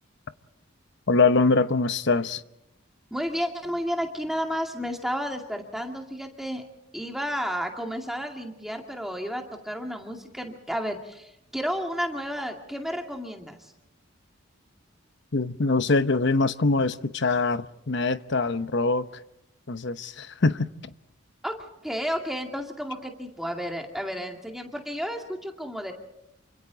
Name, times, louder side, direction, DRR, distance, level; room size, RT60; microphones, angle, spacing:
voice 1, 1.1-2.4 15.3-19.1 19.7-20.7, left 3 dB, 55° left, 0.9 m, -23 dB
voice 2, 3.1-6.6 6.9-13.7 21.4-21.5 21.8-25.9, equal, ahead, 2.2 m, -32 dB
28.5 x 25.5 x 4.0 m
head